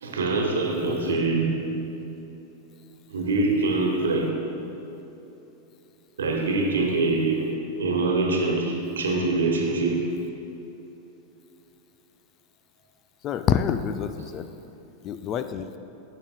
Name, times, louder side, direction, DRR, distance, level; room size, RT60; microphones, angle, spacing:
voice 1, 0.0-1.6 3.1-4.4 6.2-7.5 7.7-10.1, right 3 dB, 65° right, 1 dB, 1.2 m, -24 dB
voice 2, 0.9-1.2 13.2-14.5 15.0-15.7, left 8 dB, 30° left, 10 dB, 0.3 m, -27 dB
14.0 x 6.7 x 2.2 m, 2.9 s
figure-of-eight pair, 90°, 0 cm